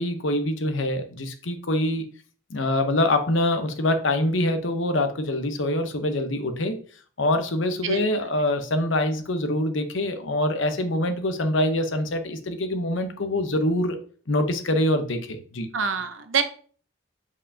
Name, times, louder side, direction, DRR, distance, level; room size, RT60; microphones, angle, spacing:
voice 1, 0.0-2.1 2.5-6.8 7.2-14.0 14.3-15.7, left 1 dB, 75° left, 7 dB, 0.9 m, -25 dB
voice 2, 7.8-8.3 15.7-16.4, right 6 dB, 80° right, 8 dB, 0.8 m, -26 dB
7.6 x 4.7 x 2.8 m, 0.43 s
head